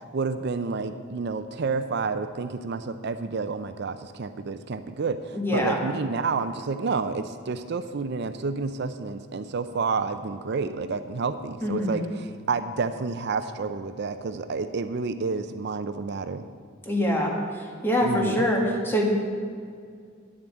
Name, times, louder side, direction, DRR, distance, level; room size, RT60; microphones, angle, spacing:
voice 1, 0.1-16.4 18.0-18.4, right 4 dB, 55° right, 10 dB, 0.5 m, -29 dB
voice 2, 5.3-5.8 11.6-12.0 16.9-19.1, left 1 dB, 10° left, -1 dB, 1.9 m, -25 dB
9.9 x 7.4 x 8.8 m, 2.2 s
head